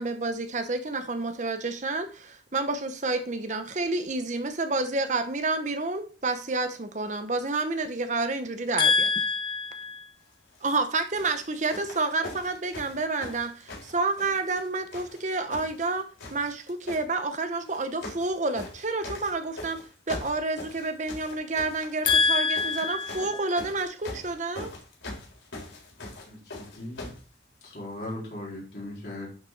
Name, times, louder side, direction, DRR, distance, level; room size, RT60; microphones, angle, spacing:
voice 1, 0.0-9.1 10.6-19.8 20.1-24.7, right 3 dB, 40° right, 0.8 m, -29 dB
voice 2, 8.8-10.1 22.1-23.4, left 5 dB, 25° left, 0.8 m, -25 dB
sound 1, 10.5-10.8 11.2-14.7 14.9-15.9 16.2-17.0 17.7-18.3 18.5-27.2 28.1-28.2, left 2 dB, 90° left, 4.2 m, -41 dB
voice 3, 26.2-27.1 27.6-29.3, left 1 dB, 55° left, 4.2 m, -38 dB
11.0 x 5.3 x 3.9 m
head